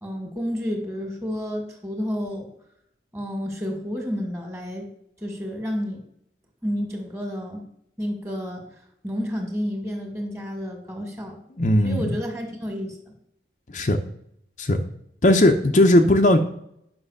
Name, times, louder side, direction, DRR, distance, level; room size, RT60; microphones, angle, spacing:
voice 1, 0.0-2.5 3.1-4.9 5.2-6.0 6.6-7.6 8.0-8.7 9.0-11.4 11.8-13.1, equal, 15° right, 3 dB, 2.3 m, -30 dB
voice 2, 11.6-12.1 13.7-14.0 14.6-14.8 15.2-16.4, left 1 dB, 45° left, 4 dB, 0.7 m, -17 dB
9.8 x 6.2 x 6.6 m, 0.73 s
head